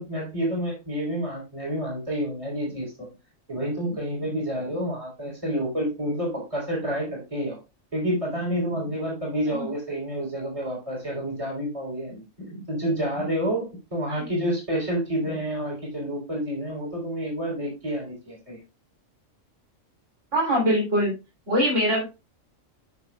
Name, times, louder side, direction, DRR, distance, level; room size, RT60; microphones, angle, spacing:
voice 1, 0.0-3.1 3.5-7.6 7.9-18.6, equal, 25° right, -3 dB, 3.8 m, -29 dB
voice 2, 20.3-21.1 21.5-22.0, equal, 60° right, -3 dB, 3.8 m, -23 dB
9.3 x 6.4 x 2.3 m, 0.27 s
omnidirectional pair, 1.4 m